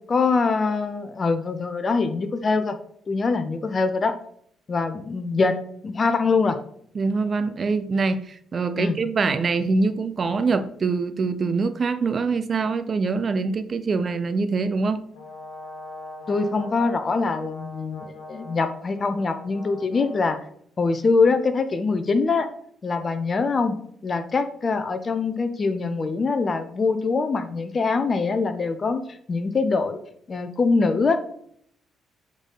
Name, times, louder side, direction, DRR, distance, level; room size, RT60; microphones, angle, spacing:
voice 1, 0.1-2.8 3.1-4.1 4.7-5.5 5.8-6.6 8.8-9.0 16.3-20.4 20.8-22.5 22.8-23.8 24.0-29.0 29.3-30.0 30.3-31.2, left 4 dB, 35° left, 9 dB, 0.8 m, -23 dB
voice 2, 6.9-15.0, right 4 dB, 40° right, 11 dB, 0.6 m, -24 dB
Brass instrument, 15.1-20.3, left 2 dB, 65° left, 1.3 m, -41 dB
7.9 x 4.1 x 3.9 m, 0.64 s
figure-of-eight pair, 45°, 0 cm